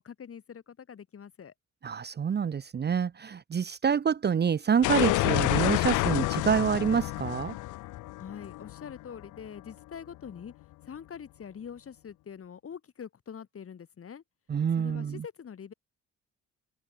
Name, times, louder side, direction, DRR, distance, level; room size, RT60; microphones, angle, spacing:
voice 1, 0.0-1.5 8.2-10.5 10.8-14.2 14.8-15.7, left 7 dB, 50° left, 3.9 m, -44 dB
voice 2, 1.8-7.6 14.5-15.2, right 7 dB, 35° right, 0.8 m, -27 dB
sound 1, 4.8-9.6, left 19 dB, 85° left, 0.6 m, -29 dB
open air
cardioid pair, 90°, 30 cm